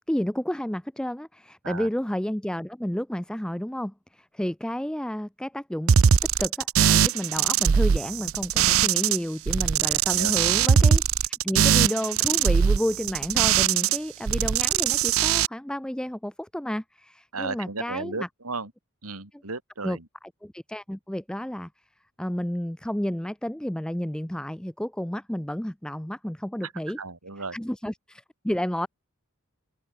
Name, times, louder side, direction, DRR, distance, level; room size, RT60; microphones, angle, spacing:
voice 1, 0.1-5.9 6.4-11.0 11.4-18.3 19.8-20.0 20.4-21.7 22.2-27.0 27.5-28.9, equal, 5° left, 0.4 m, -31 dB
sound 1, 5.9-9.2 9.5-14.0 14.3-15.5, right 8 dB, 70° right, 0.5 m, -21 dB
voice 2, 10.1-10.6 17.3-18.7 19.0-20.1 26.6-26.7 27.0-27.6, right 3 dB, 90° right, 3.6 m, -35 dB
open air
head